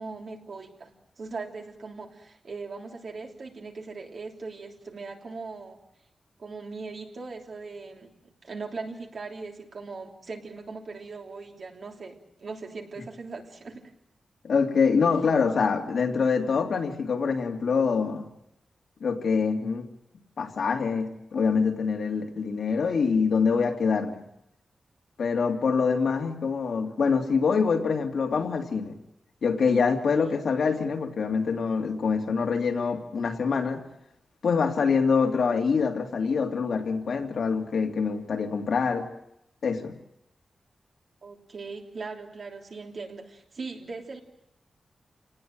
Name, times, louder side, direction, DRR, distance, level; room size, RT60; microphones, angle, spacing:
voice 1, 0.0-5.8 6.4-13.9 30.1-30.4 41.2-44.2, right 4 dB, 50° right, 1 dB, 3.4 m, -40 dB
voice 2, 14.4-18.3 19.0-19.9 20.4-24.2 25.2-29.0 29.4-33.8 34.4-39.1 39.6-40.0, left 5 dB, 70° left, 2 dB, 2.8 m, -25 dB
28.5 x 19.5 x 7.6 m, 0.80 s
wide cardioid pair, 175°, 0 cm